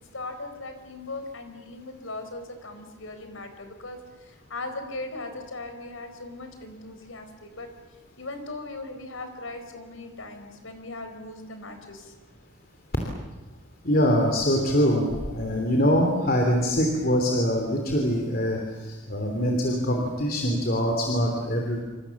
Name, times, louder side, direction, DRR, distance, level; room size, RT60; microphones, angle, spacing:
voice 1, 0.1-7.7 8.2-12.1, left 2 dB, 85° left, 7 dB, 4.5 m, -39 dB
voice 2, 13.8-21.8, equal, 50° left, 2 dB, 3.3 m, -24 dB
28.0 x 26.0 x 7.3 m, 1.3 s
head